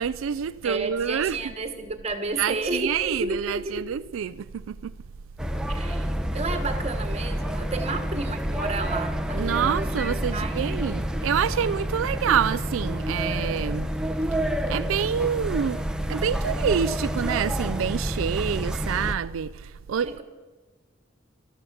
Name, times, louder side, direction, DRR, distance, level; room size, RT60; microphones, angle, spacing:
voice 1, 0.0-1.4 2.4-4.9 9.4-13.9 14.3-14.4 14.7-15.8 16.1-20.2, right 7 dB, 85° right, 0.4 m, -27 dB
voice 2, 0.6-3.9 5.7-10.5 20.0-20.2, right 3 dB, 35° right, 1.4 m, -32 dB
sound 1, 5.4-19.1, equal, 5° right, 0.7 m, -28 dB
13.5 x 13.0 x 7.0 m
head